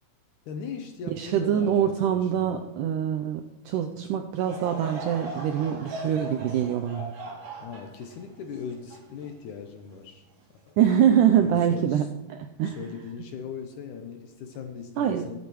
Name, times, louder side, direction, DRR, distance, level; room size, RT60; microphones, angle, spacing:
voice 1, 0.5-2.7 7.6-10.2 10.7-10.9 11.4-12.1 12.6-15.4, left 6 dB, 75° left, 5 dB, 2.0 m, -39 dB
voice 2, 1.2-7.1 10.8-12.8 15.0-15.3, right 9 dB, 85° right, 6 dB, 1.8 m, -24 dB
Laughter / Crowd, 4.4-9.8 10.4-10.5 11.3-11.5, right 1 dB, 65° right, 4.0 m, -39 dB
21.5 x 8.4 x 3.0 m, 0.99 s
omnidirectional pair, 4.2 m